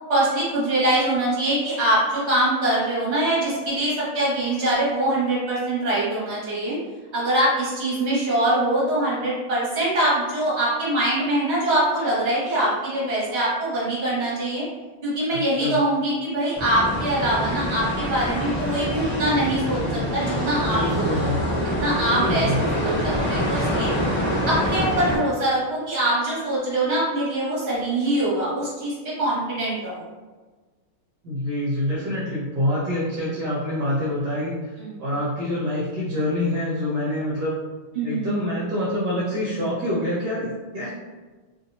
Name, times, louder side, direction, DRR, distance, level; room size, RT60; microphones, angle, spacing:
voice 1, 0.1-6.8 7.1-14.6 15.0-21.1 21.5-22.5 22.8-23.9 24.5-30.0 34.8-35.0 37.9-38.3, right 1 dB, 35° right, -8 dB, 1.3 m, -23 dB
voice 2, 15.3-15.8 20.7-21.4 22.0-22.6 31.2-37.6 38.0-40.9, left 1 dB, 65° right, -7 dB, 1.1 m, -26 dB
sound 1, 16.5-25.2, equal, 35° left, 0.6 m, -25 dB
3.2 x 2.6 x 2.6 m, 1.3 s
omnidirectional pair, 2.2 m